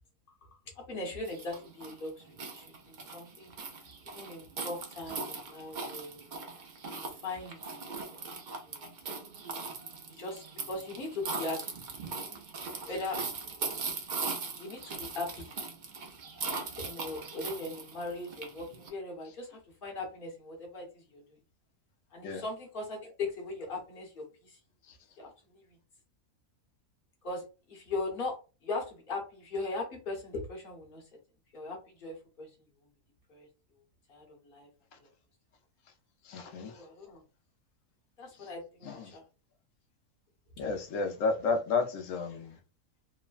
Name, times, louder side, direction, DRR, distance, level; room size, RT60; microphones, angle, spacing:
voice 1, 0.4-6.3 6.9-8.2 8.6-8.9 10.1-11.7 12.6-13.3 14.5-15.5 16.8-21.4 22.1-24.6 25.2-25.8 27.2-31.1 31.5-32.9 33.3-33.5 34.1-34.7 35.0-35.1 36.6-37.2 38.2-39.2, left 2 dB, 40° left, 1.0 m, -40 dB
sound 1, 1.2-18.9, right 4 dB, 75° right, 0.4 m, -40 dB
voice 2, 36.2-36.8 38.9-39.2 40.6-42.6, left 4 dB, 65° left, 0.9 m, -32 dB
3.0 x 2.1 x 2.4 m
omnidirectional pair, 1.6 m